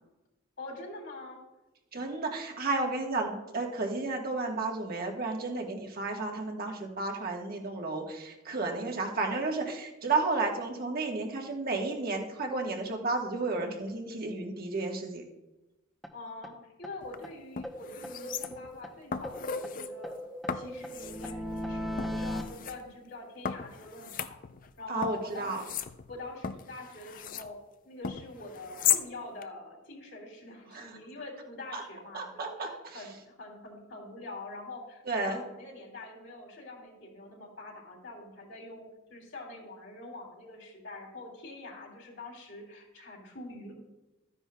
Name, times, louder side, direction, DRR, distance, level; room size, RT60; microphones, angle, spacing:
voice 1, 0.6-1.4 16.1-20.1 20.5-24.4 24.8-25.7 26.1-27.6 27.8-38.8 39.1-43.7, left 2 dB, 65° left, -1 dB, 2.9 m, -45 dB
voice 2, 1.9-15.2 24.9-25.6 30.7-30.9 31.7-31.8 32.1-33.0 35.1-35.4, right 3 dB, 50° right, 1 dB, 1.4 m, -32 dB
sound 1, 16.0-16.1 16.4-16.5 16.8-16.9 17.2-17.3 17.6-18.9 19.2-22.4, equal, ahead, 0.7 m, -38 dB
sound 2, 17.0-17.2 17.6-18.8 19.1-19.9 20.5-21.4 22.0-22.8 23.4-24.7 25.0-27.5 28.0-29.1 29.4-29.5, left 8 dB, 45° left, 0.4 m, -35 dB
13.5 x 9.9 x 2.3 m, 1.0 s
head